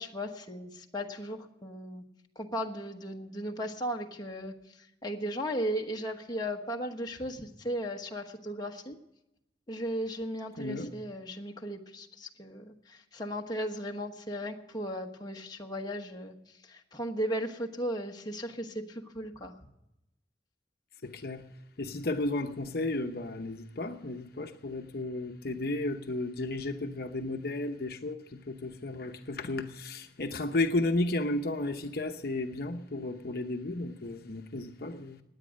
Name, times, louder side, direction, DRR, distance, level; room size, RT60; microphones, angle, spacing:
voice 1, 0.0-2.0 2.4-4.5 5.0-9.0 9.7-16.3 16.7-19.5, equal, 20° left, 1.2 m, -36 dB
voice 2, 10.6-10.9 21.0-21.4 21.8-35.2, left 2 dB, 55° left, 0.9 m, -33 dB
17.0 x 10.0 x 6.4 m
head